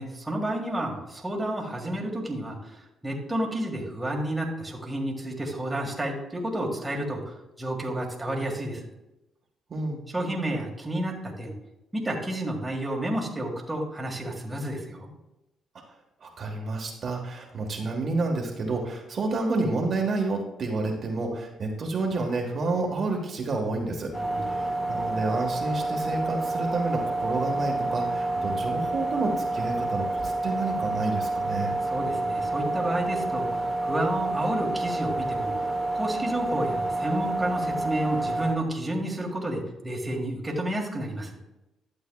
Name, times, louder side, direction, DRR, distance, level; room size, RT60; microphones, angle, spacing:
voice 1, 0.0-8.9 10.1-11.5 11.9-15.1 24.1-24.5 31.9-41.4, right 1 dB, 15° right, -1 dB, 1.8 m, -31 dB
voice 2, 9.7-10.0 16.2-24.1 24.5-31.8, right 3 dB, 50° right, 0 dB, 1.5 m, -29 dB
sound 1, 24.1-38.6, right 2 dB, 10° left, 1.9 m, -29 dB
11.5 x 7.8 x 2.3 m, 0.95 s
cardioid pair, 90°, 0 cm